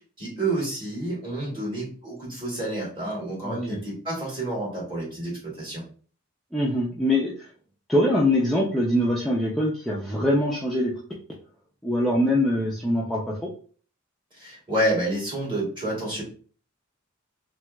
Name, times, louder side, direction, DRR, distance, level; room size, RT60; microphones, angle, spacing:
voice 1, 0.2-5.8 14.4-16.2, right 1 dB, 25° right, -4 dB, 1.5 m, -29 dB
voice 2, 3.4-3.8 6.5-7.5 7.9-10.9 11.8-13.5, left 1 dB, ahead, -6 dB, 0.4 m, -23 dB
3.2 x 2.9 x 2.3 m, 0.42 s
head